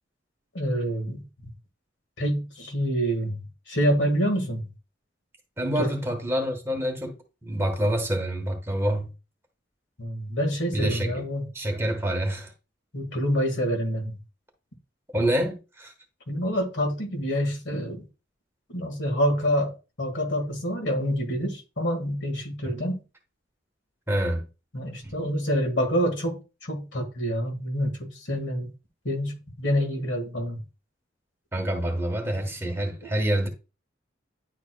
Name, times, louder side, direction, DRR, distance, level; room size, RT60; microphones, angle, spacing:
voice 1, 0.5-1.2 2.2-4.7 5.8-6.0 10.0-11.5 12.9-14.1 16.3-18.0 18.7-23.0 24.7-28.7 29.1-30.6, equal, 75° left, 1.7 m, -27 dB
voice 2, 5.6-7.2 7.4-9.1 10.7-11.2 11.5-12.5 15.1-15.9 22.6-22.7 24.1-24.4 25.0-25.1 31.5-33.5, right 1 dB, 15° right, 1.2 m, -27 dB
10.0 x 4.5 x 2.2 m
head